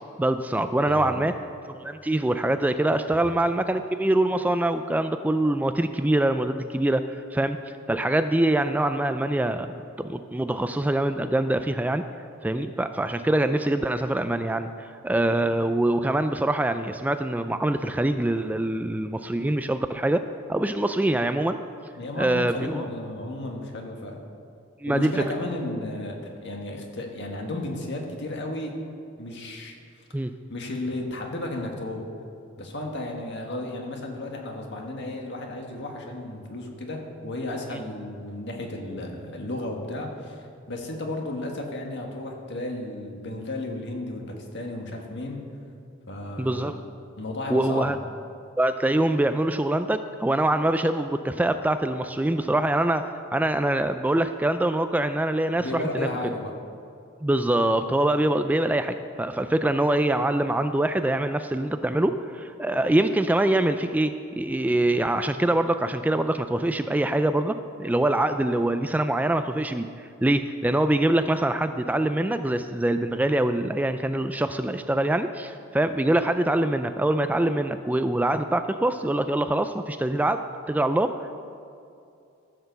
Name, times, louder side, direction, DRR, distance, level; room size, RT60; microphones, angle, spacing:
voice 1, 0.2-1.3 1.7-12.0 12.4-21.6 22.1-22.8 24.8-25.1 30.1-30.3 46.4-46.8 47.5-48.0 48.6-56.1 57.2-69.9 70.2-81.3, right 1 dB, 10° right, 9 dB, 0.3 m, -24 dB
voice 2, 0.8-1.3 3.1-3.2 22.0-24.2 24.9-28.8 29.2-29.7 30.5-32.1 32.6-45.5 46.1-46.8 47.2-47.9 55.6-56.5, left 1 dB, 60° left, 1 dB, 1.7 m, -33 dB
14.5 x 6.6 x 6.9 m, 2.5 s
head